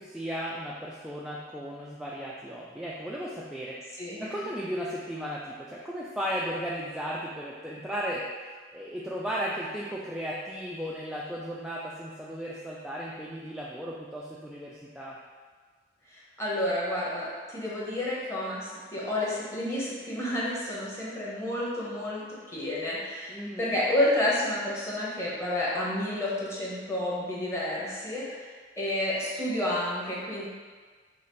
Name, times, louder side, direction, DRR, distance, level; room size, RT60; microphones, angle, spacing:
voice 1, 0.0-3.8 4.2-8.2 8.7-15.2 23.3-23.8, equal, 5° right, -6 dB, 0.3 m, -35 dB
voice 2, 16.4-28.5 28.8-30.4, left 1 dB, 15° left, -7 dB, 1.0 m, -30 dB
5.6 x 2.5 x 3.1 m, 1.5 s
head